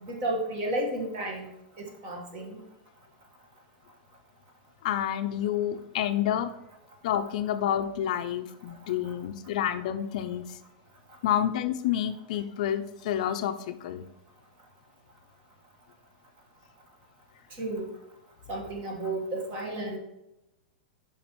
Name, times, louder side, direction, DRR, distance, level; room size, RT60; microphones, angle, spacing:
voice 1, 0.0-1.5 1.8-2.6 9.0-9.1 17.6-17.9 18.5-20.0, right 1 dB, 35° right, 1 dB, 1.4 m, -32 dB
voice 2, 4.8-6.5 7.0-10.6 11.2-14.0, left 10 dB, 55° left, 9 dB, 0.4 m, -29 dB
7.2 x 5.2 x 3.0 m, 0.91 s
supercardioid pair, 165°, 5 cm